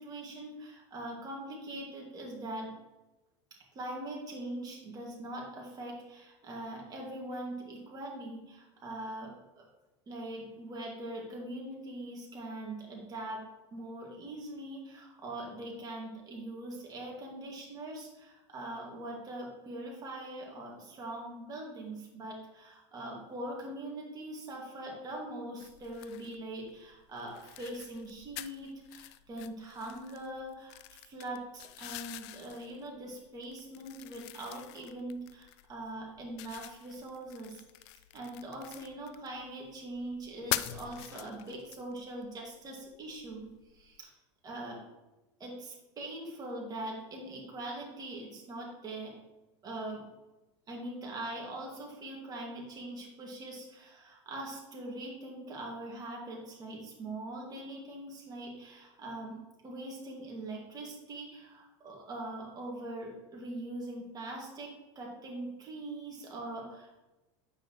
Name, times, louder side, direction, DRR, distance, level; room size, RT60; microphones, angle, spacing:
voice 1, 0.0-2.7 3.7-9.7 10.1-13.4 13.7-43.5 43.7-44.1 44.4-44.8 45.4-49.2 49.6-50.0 50.7-59.4 59.6-67.0, right 1 dB, 25° right, -2 dB, 2.0 m, -42 dB
sound 1, 25.6-44.0, left 15 dB, 70° left, 0.4 m, -45 dB
8.8 x 5.8 x 3.0 m, 1.0 s
supercardioid pair, 120°, 15 cm